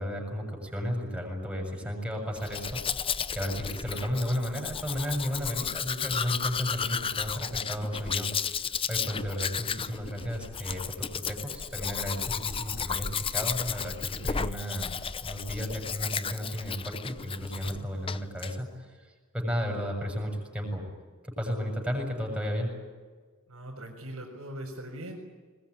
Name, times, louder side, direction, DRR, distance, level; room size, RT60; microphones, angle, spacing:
voice 1, 0.0-20.8 21.2-22.7, equal, 5° right, 1 dB, 7.0 m, -34 dB
Domestic sounds home sounds, 2.4-17.8 18.1-18.5, left 6 dB, 25° left, 0.6 m, -33 dB
voice 2, 23.5-25.2, right 1 dB, 85° right, -5 dB, 4.8 m, -41 dB
21.0 x 21.0 x 9.7 m, 1.5 s
head